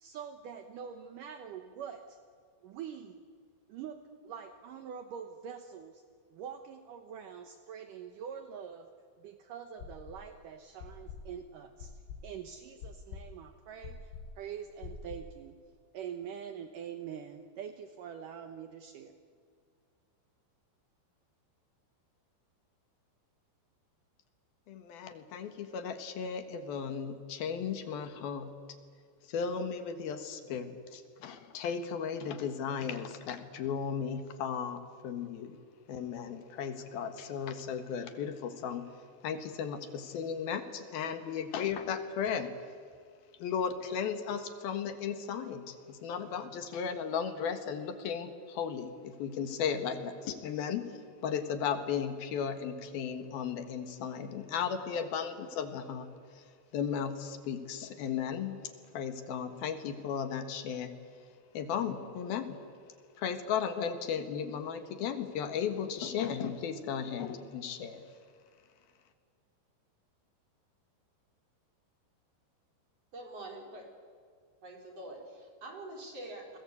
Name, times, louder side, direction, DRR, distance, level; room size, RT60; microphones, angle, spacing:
voice 1, 0.0-2.2 2.6-3.2 3.7-4.0 4.2-6.0 6.3-8.9 9.2-11.9 12.2-15.5 15.9-19.1, right 8 dB, 80° right, 7 dB, 1.9 m, -44 dB
sound 1, 9.8-10.4 10.8-15.4, left 5 dB, 85° left, 4.6 m, -46 dB
voice 2, 24.7-28.6 29.3-35.5 35.9-38.9 39.2-42.5 43.4-50.8 51.2-56.1 56.3-56.4 56.7-58.6 58.9-60.9 61.5-62.6 63.2-68.0, left 7 dB, 65° left, 9 dB, 2.9 m, -35 dB
voice 3, 73.1-73.9 74.6-76.6, right 1 dB, 35° right, 2 dB, 5.0 m, -45 dB
30.0 x 22.0 x 8.4 m, 2.1 s
omnidirectional pair, 5.4 m